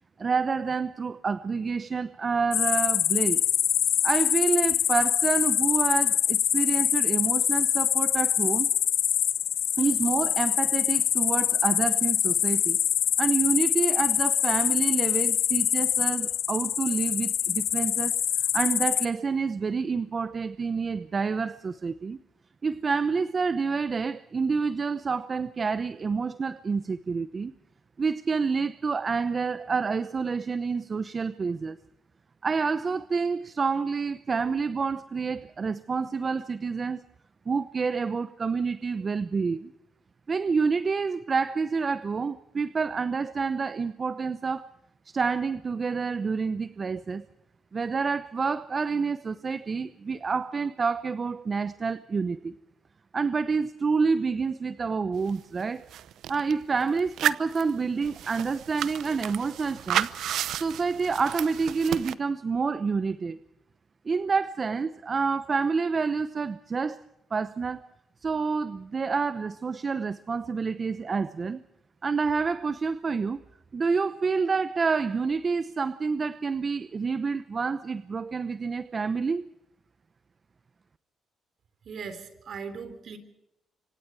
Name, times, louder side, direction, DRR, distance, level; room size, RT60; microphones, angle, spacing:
voice 1, 0.2-3.4 4.0-8.7 9.8-12.8 13.2-22.2 22.6-27.5 28.0-31.8 32.4-37.0 37.5-39.7 40.3-44.7 45.1-47.2 47.7-52.5 53.1-55.9 56.3-60.1 60.5-63.4 64.0-67.0 67.3-67.8 68.2-71.6 72.0-73.4 73.7-79.4, right 5 dB, 40° right, 0.8 m, -28 dB
sound 1, 2.5-19.1, left 10 dB, 70° left, 1.3 m, -25 dB
sound 2, 55.3-55.4 55.6-56.5 57.0-62.1, right 11 dB, 75° right, 0.8 m, -31 dB
voice 2, 81.9-83.2, right 5 dB, 60° right, 3.7 m, -39 dB
25.5 x 25.5 x 4.8 m
cardioid pair, 75°, 0 cm